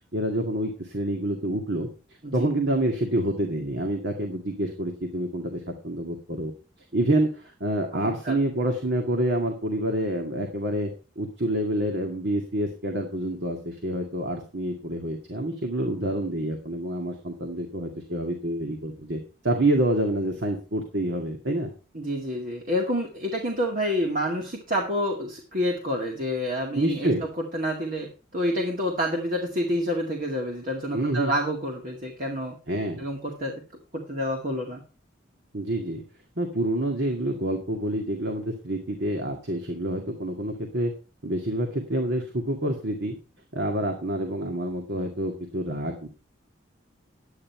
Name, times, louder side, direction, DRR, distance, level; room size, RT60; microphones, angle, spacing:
voice 1, 0.1-1.9 2.3-6.5 6.9-10.9 11.2-21.7 26.7-27.3 30.9-31.3 32.7-33.0 35.5-36.0 36.4-40.9 41.2-43.2 43.5-46.1, right 1 dB, 65° right, 3 dB, 2.1 m, -27 dB
voice 2, 7.9-8.4 21.9-32.6 33.0-33.6 33.9-34.8, equal, 50° right, 1 dB, 2.1 m, -28 dB
11.0 x 9.7 x 4.5 m, 0.34 s
head